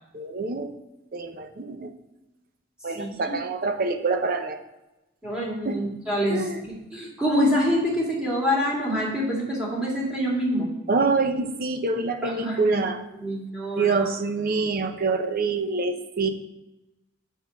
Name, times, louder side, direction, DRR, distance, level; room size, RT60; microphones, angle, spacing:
voice 1, 0.1-0.7 1.1-1.9 2.8-4.6 5.6-5.8 6.3-6.7 10.9-13.0 13.8-16.3, right 3 dB, 45° right, 7 dB, 0.7 m, -26 dB
voice 2, 3.0-3.4 5.2-10.7 12.2-12.8 13.2-14.1, equal, 5° right, -4 dB, 2.4 m, -26 dB
7.0 x 5.5 x 6.2 m, 0.97 s
head